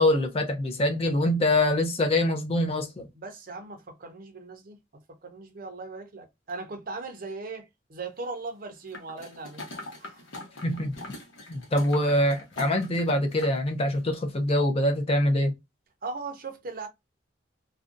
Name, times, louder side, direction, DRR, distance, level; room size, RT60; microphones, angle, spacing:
voice 1, 0.0-3.1 10.6-10.9 11.5-15.5, left 1 dB, 30° left, 0.4 m, -24 dB
voice 2, 3.1-4.8 5.2-9.6 10.0-10.3 16.0-16.9, right 3 dB, 45° right, 0.6 m, -38 dB
sound 1, 8.9-13.6 13.9-14.0, left 1 dB, 80° left, 0.8 m, -42 dB
2.5 x 2.1 x 2.5 m
head